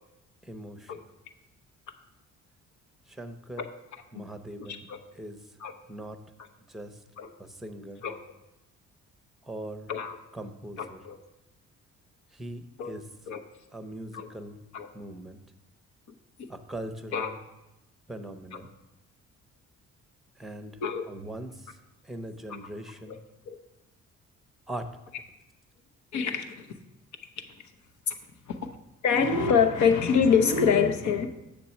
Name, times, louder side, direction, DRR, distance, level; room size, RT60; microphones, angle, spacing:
voice 1, 0.4-0.9 3.1-3.6 4.1-4.9 5.1-5.4 5.9-6.2 6.7-7.0 7.4-8.0 9.4-9.9 10.3-11.0 12.3-13.0 13.7-14.6 14.9-15.4 16.5-17.4 18.1-18.7 20.4-20.8 21.1-21.7 22.0-23.2 24.7-24.9, right 1 dB, ahead, 9 dB, 0.8 m, -40 dB
voice 2, 10.8-11.2 12.8-12.9 13.3-13.4 14.1-14.3 14.7-14.9 16.4-16.5 17.1-17.3 18.5-18.6 20.8-21.1 22.5-22.6 23.1-23.2 23.5-23.6 26.1-26.8 28.1-28.2 28.5-28.7 29.0-31.3, left 6 dB, 70° left, 7 dB, 1.0 m, -25 dB
6.9 x 6.9 x 4.3 m, 0.94 s
cardioid pair, 90°, 30 cm